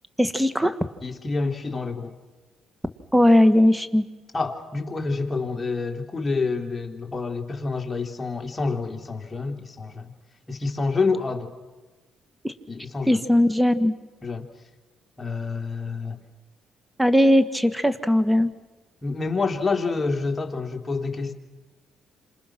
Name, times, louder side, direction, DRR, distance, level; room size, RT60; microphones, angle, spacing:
voice 1, 0.2-0.7 3.1-4.1 12.4-12.5 13.1-13.9 17.0-18.5, left 1 dB, 5° right, 10 dB, 1.8 m, -19 dB
voice 2, 1.0-2.1 4.3-10.1 10.5-11.5 12.7-13.2 14.2-14.5 15.2-16.2 19.0-21.3, left 4 dB, 25° left, 3 dB, 3.2 m, -28 dB
29.0 x 27.0 x 6.2 m, 1.2 s
cardioid pair, 90°, 0 cm